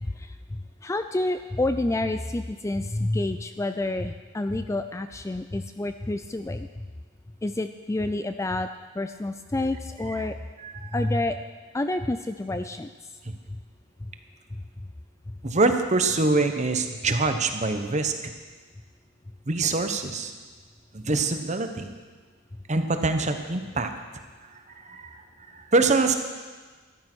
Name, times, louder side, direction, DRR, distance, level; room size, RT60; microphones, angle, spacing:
voice 1, 0.0-6.9 7.4-8.7 8.9-10.4 10.9-11.4 11.7-12.9 14.0-14.1 14.5-14.6 15.3-15.6, left 2 dB, 15° left, 9 dB, 0.3 m, -29 dB
voice 2, 10.6-10.9 13.2-13.3 15.4-18.3 19.5-20.3 20.9-21.9 22.7-23.9 24.5-25.2 25.5-26.1, right 3 dB, 35° right, 7 dB, 1.0 m, -25 dB
13.5 x 11.5 x 6.2 m, 1.4 s
head